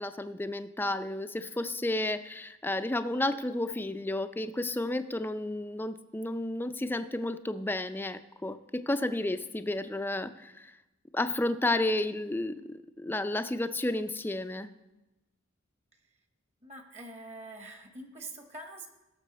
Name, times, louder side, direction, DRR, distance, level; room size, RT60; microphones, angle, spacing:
voice 1, 0.0-10.7 11.1-14.7, left 1 dB, 10° left, 11 dB, 0.4 m, -32 dB
voice 2, 16.6-18.9, right 2 dB, 35° right, 5 dB, 1.1 m, -45 dB
16.5 x 7.0 x 4.1 m, 1.0 s
head